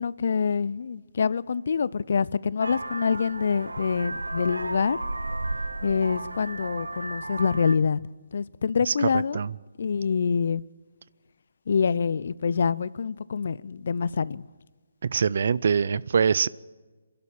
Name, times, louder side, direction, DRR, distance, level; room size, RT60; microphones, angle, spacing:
voice 1, 0.0-5.0 5.8-8.1 8.3-9.4 9.8-10.6 11.7-14.4, left 6 dB, 55° left, 0.6 m, -26 dB
Vehicle horn car horn honking, 2.6-7.8, right 2 dB, 85° right, 1.2 m, -34 dB
voice 2, 8.9-9.5 15.1-16.5, right 6 dB, 55° right, 0.6 m, -24 dB
26.5 x 12.0 x 8.8 m
figure-of-eight pair, 145°, 0 cm